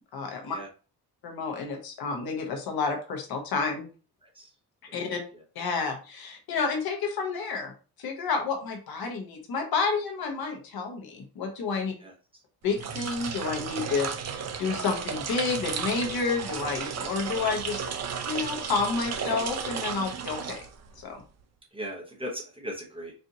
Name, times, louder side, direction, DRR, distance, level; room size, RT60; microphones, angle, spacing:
voice 1, 0.1-0.6 1.2-3.9 4.9-5.2 5.5-7.7 8.0-11.9 12.6-14.1 14.6-17.8 18.3-20.6 21.0-21.2, left 4 dB, 60° left, 3 dB, 1.0 m, -30 dB
voice 2, 12.0-12.4 21.7-23.1, equal, 15° right, -2 dB, 0.8 m, -38 dB
sound 1, 12.7-21.1, right 6 dB, 40° right, 0.5 m, -34 dB
4.3 x 2.5 x 2.7 m, 0.36 s
cardioid pair, 155°, 41 cm